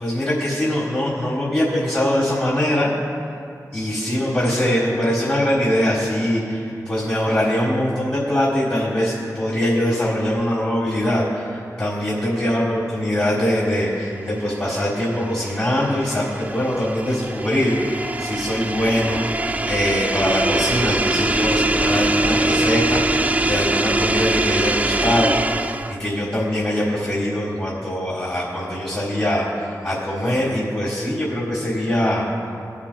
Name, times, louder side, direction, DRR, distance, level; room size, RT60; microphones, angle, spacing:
voice 1, 0.0-2.9 3.2-3.4 3.7-32.5, equal, 35° left, -6 dB, 1.6 m, -22 dB
sound 1, 14.2-26.1, right 2 dB, 20° right, 0.3 m, -23 dB
21.5 x 7.2 x 2.3 m, 2.5 s
wide cardioid pair, 85°, 7 cm